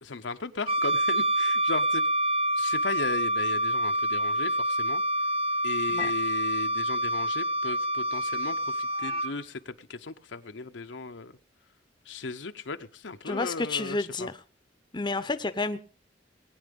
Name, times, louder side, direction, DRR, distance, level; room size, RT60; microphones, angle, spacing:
voice 1, 0.0-2.1 2.6-5.0 5.6-11.3 12.1-14.3, left 4 dB, 80° left, 0.9 m, -36 dB
Wind instrument woodwind instrument, 0.7-9.3, right 1 dB, 30° right, 0.8 m, -27 dB
voice 2, 13.2-14.4 14.9-15.8, left 3 dB, 25° left, 0.7 m, -30 dB
20.0 x 9.4 x 5.3 m
head